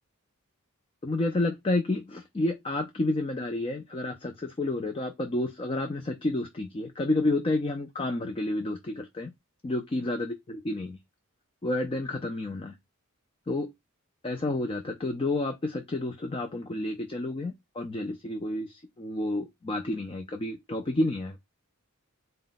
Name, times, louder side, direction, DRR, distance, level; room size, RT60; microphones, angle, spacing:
voice 1, 1.0-9.3 9.6-11.0 11.6-12.8 13.5-13.7 14.2-21.4, left 2 dB, 25° left, 0.4 m, -30 dB
4.0 x 2.2 x 3.9 m
head